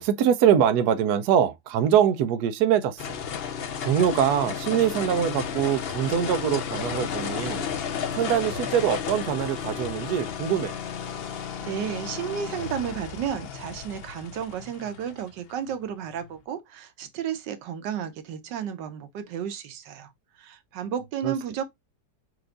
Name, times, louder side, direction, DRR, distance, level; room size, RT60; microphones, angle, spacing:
voice 1, 0.0-3.2 3.8-7.7 8.1-10.8 21.2-21.3, right 9 dB, 75° right, 1.1 m, -23 dB
sound 1, 3.0-16.3, left 7 dB, 80° left, 0.5 m, -33 dB
voice 2, 11.2-20.1 20.4-21.6, right 8 dB, 90° right, 1.4 m, -33 dB
4.6 x 2.5 x 3.7 m
omnidirectional pair, 1.8 m